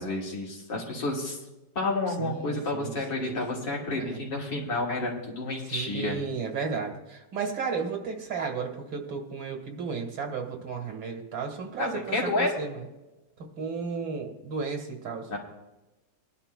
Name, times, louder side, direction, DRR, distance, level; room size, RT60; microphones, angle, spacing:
voice 1, 0.0-1.4 1.7-6.2 11.8-12.5 15.3-15.4, left 2 dB, 65° left, -3 dB, 3.0 m, -30 dB
voice 2, 2.2-3.6 4.0-4.2 5.6-12.8 13.4-15.3, right 5 dB, 85° right, 2 dB, 2.4 m, -34 dB
20.5 x 11.0 x 2.3 m, 1.0 s
omnidirectional pair, 2.1 m